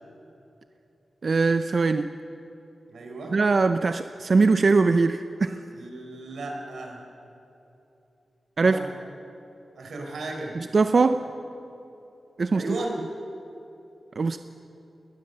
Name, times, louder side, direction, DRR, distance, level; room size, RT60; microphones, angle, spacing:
voice 1, 1.2-2.1 3.3-5.6 8.6-8.8 10.6-11.3 12.4-12.6 14.2-14.4, right 4 dB, 50° right, 9 dB, 0.6 m, -21 dB
voice 2, 2.9-3.4 5.7-7.0 8.6-8.9 9.7-10.6 12.5-12.9, right 2 dB, 90° right, 1 dB, 4.2 m, -35 dB
21.5 x 20.0 x 6.7 m, 2.9 s
wide cardioid pair, 115°, 0 cm